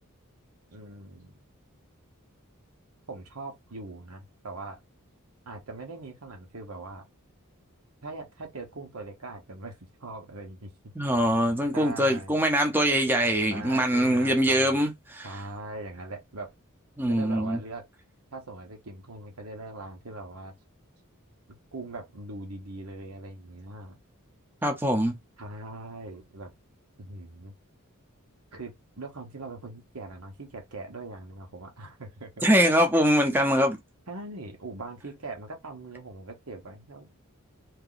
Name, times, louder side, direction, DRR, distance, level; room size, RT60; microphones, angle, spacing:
voice 1, 0.7-1.4 3.1-4.8 5.5-7.0 8.0-9.7 10.0-10.9 11.7-12.4 13.5-14.8 15.2-16.5 17.1-17.9 18.3-20.5 21.5-24.0 25.4-26.5 27.0-27.5 28.5-32.4 34.1-37.1, right 2 dB, 85° right, 1.3 m, -41 dB
voice 2, 11.0-15.3 17.0-17.6 24.6-25.2 32.4-33.8, equal, 10° right, 0.7 m, -23 dB
2.9 x 2.8 x 3.9 m
head